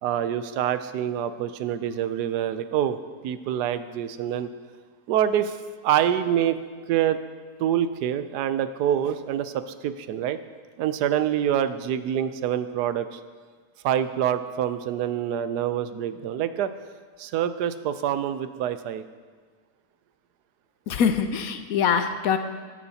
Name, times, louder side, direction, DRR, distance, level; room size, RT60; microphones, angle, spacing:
voice 1, 0.0-3.0 3.2-4.5 5.1-5.6 5.8-6.6 6.9-7.2 7.6-10.4 10.8-13.2 13.8-16.7 17.2-19.0, right 10 dB, 90° right, 11 dB, 1.2 m, -26 dB
voice 2, 20.9-22.4, left 7 dB, 70° left, 9 dB, 1.0 m, -23 dB
14.5 x 11.0 x 2.8 m, 1.5 s
omnidirectional pair, 1.7 m